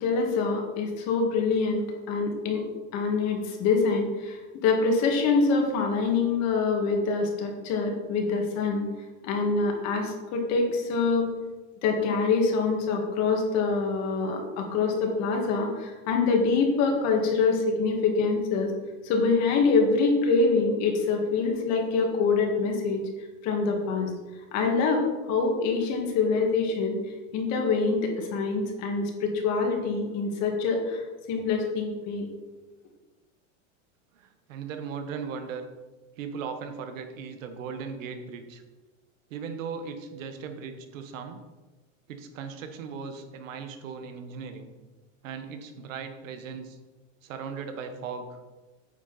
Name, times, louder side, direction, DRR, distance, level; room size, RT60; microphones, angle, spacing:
voice 1, 0.0-2.6 2.9-8.9 9.2-11.3 11.8-18.7 19.0-23.0 23.4-24.1 24.5-27.0 27.3-32.3, left 4 dB, 45° left, 2 dB, 1.9 m, -25 dB
voice 2, 34.1-35.6 36.2-38.6 39.3-41.4 42.1-44.7 45.2-46.8 47.2-48.4, right 6 dB, 90° right, 7 dB, 1.3 m, -38 dB
9.2 x 6.4 x 4.1 m, 1.2 s
supercardioid pair, 150°, 38 cm